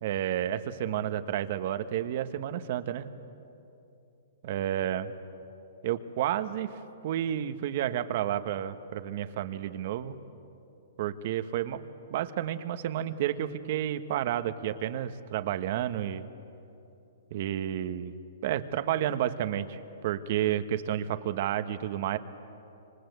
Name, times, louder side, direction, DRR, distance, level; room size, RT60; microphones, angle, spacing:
voice 1, 0.0-3.1 4.4-5.1 5.8-6.7 7.0-10.2 11.0-11.8 12.1-16.3 17.3-18.1 18.4-22.2, right 11 dB, 50° right, 10 dB, 1.3 m, -31 dB
27.0 x 25.5 x 8.1 m, 2.8 s
hypercardioid pair, 150°, 0 cm